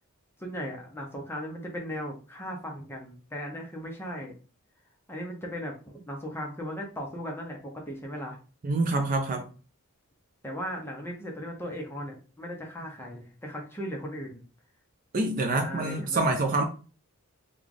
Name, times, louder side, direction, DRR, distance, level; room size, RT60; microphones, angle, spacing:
voice 1, 0.4-4.3 5.1-8.4 10.4-14.4 15.5-16.2, equal, 10° left, 0.7 m, -37 dB
voice 2, 8.6-9.4 15.1-16.6, right 2 dB, 40° right, 0.4 m, -26 dB
3.2 x 2.3 x 3.8 m
head